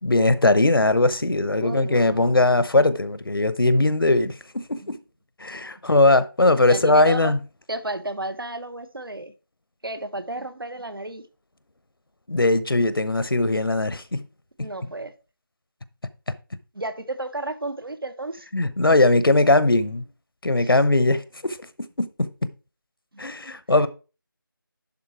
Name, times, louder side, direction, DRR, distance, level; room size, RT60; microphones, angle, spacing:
voice 1, 0.0-5.0 5.4-7.4 12.3-14.2 14.6-14.7 18.5-20.0 20.4-21.6 22.0-22.3 23.2-23.9, left 2 dB, 80° left, 0.9 m, -20 dB
voice 2, 1.6-2.3 4.8-4.9 6.5-7.3 7.7-9.3 9.8-11.2 14.6-15.1 16.7-18.5 20.6-20.7 23.1-23.2 23.7-23.9, right 2 dB, 75° right, 1.3 m, -32 dB
11.0 x 4.1 x 4.6 m
figure-of-eight pair, 170°, 12 cm